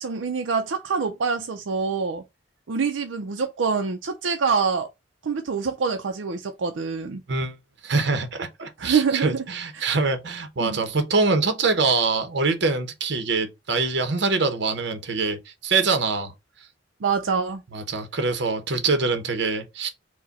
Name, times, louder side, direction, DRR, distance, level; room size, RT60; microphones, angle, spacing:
voice 1, 0.0-2.2 2.7-4.9 5.2-7.2 8.8-9.4 9.7-9.9 10.6-10.9 17.0-17.6, right 5 dB, 85° right, 0.5 m, -25 dB
voice 2, 7.8-16.3 17.7-19.9, right 4 dB, 65° right, 0.9 m, -24 dB
4.6 x 2.2 x 4.0 m
head